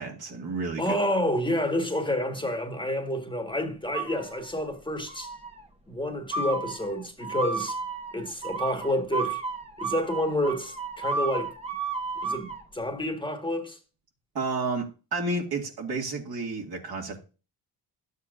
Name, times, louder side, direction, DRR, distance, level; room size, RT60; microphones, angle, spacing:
voice 1, 0.0-0.9 14.3-14.9 15.1-17.2, right 3 dB, 55° right, 2.2 m, -31 dB
voice 2, 0.8-5.3 5.9-7.8 8.1-9.4 9.8-11.5 12.2-13.8, left 1 dB, 10° left, 1.6 m, -29 dB
sound 1, 3.9-4.7 5.1-5.6 6.3-12.6, right 4 dB, 15° right, 1.0 m, -33 dB
12.0 x 8.1 x 2.5 m
supercardioid pair, 55°, 44 cm